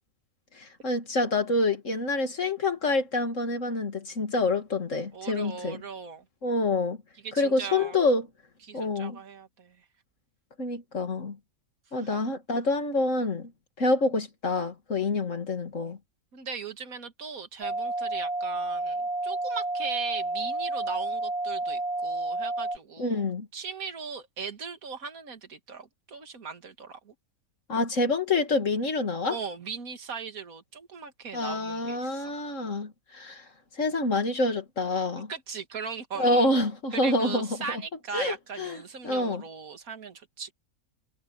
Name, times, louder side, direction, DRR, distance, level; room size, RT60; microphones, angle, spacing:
voice 1, 0.5-5.8 6.4-7.0 7.4-8.3 8.7-9.2 10.6-11.4 11.9-13.5 13.8-16.0 23.0-23.5 27.7-29.3 31.3-33.4 33.8-35.3 36.2-37.8 38.1-39.4, left 2 dB, 50° left, 2.8 m, -27 dB
voice 2, 5.1-6.2 7.2-8.0 8.6-9.8 11.9-12.1 16.3-23.3 23.5-27.1 29.3-32.3 35.3-36.5 36.9-40.5, right 6 dB, 65° right, 2.4 m, -39 dB
sound 1, 17.6-22.8, right 2 dB, 45° right, 2.6 m, -30 dB
omnidirectional pair, 1.6 m